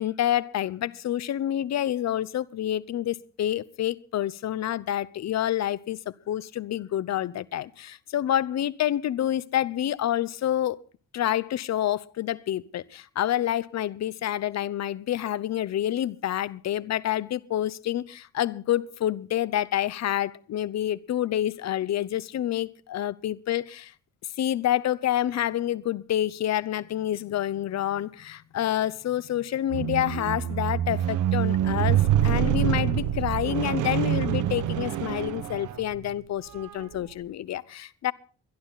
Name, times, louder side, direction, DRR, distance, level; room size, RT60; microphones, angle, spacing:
voice 1, 0.0-10.8 11.1-23.9 24.4-38.1, left 12 dB, 60° left, 0.9 m, -28 dB
Squeak, 29.7-36.1 36.8-37.0, right 11 dB, 80° right, 1.2 m, -26 dB
22.0 x 12.0 x 4.0 m
cardioid pair, 90°, 30 cm